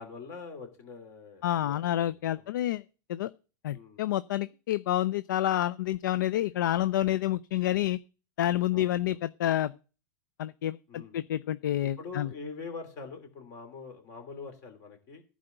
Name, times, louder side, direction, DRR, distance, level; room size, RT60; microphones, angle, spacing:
voice 1, 0.0-2.5 3.7-4.0 8.7-9.2 10.9-11.2 12.0-15.2, left 4 dB, 30° left, 2.9 m, -44 dB
voice 2, 1.4-2.8 3.1-3.3 3.6-8.0 8.4-9.7 10.4-12.3, left 13 dB, 85° left, 0.5 m, -28 dB
15.0 x 5.0 x 7.8 m
supercardioid pair, 175°, 10 cm